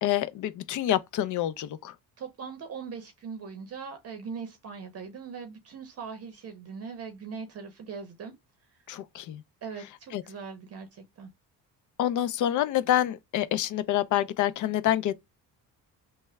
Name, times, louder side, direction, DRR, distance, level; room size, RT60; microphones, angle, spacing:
voice 1, 0.0-1.9 8.9-9.4 10.1-10.2 12.0-15.1, left 12 dB, 55° left, 0.4 m, -27 dB
voice 2, 2.2-8.3 9.6-11.3, right 5 dB, 40° right, 0.7 m, -40 dB
3.3 x 2.1 x 3.2 m
cardioid pair, 105°, 37 cm